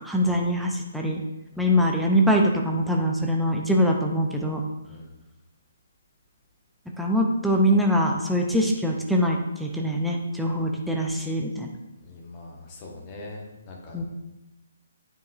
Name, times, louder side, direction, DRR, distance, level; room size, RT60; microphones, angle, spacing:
voice 1, 0.0-1.2 1.6-4.6 7.0-11.7 13.9-14.0, equal, ahead, -1 dB, 0.5 m, -23 dB
voice 2, 12.0-14.0, left 2 dB, 25° left, 0 dB, 1.1 m, -42 dB
9.0 x 4.7 x 2.5 m, 0.98 s
figure-of-eight pair, 135°, 0 cm